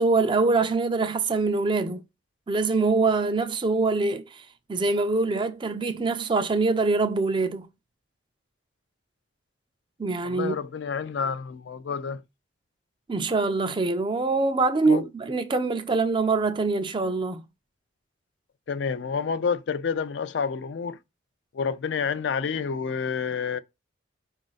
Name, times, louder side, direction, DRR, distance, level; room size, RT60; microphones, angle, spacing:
voice 1, 0.0-2.0 2.5-7.7 10.0-10.6 13.1-17.4, right 3 dB, 25° right, 0.4 m, -24 dB
voice 2, 10.2-12.2 14.9-15.1 18.7-21.0 21.5-23.6, left 6 dB, 70° left, 0.4 m, -29 dB
5.0 x 2.5 x 3.9 m
head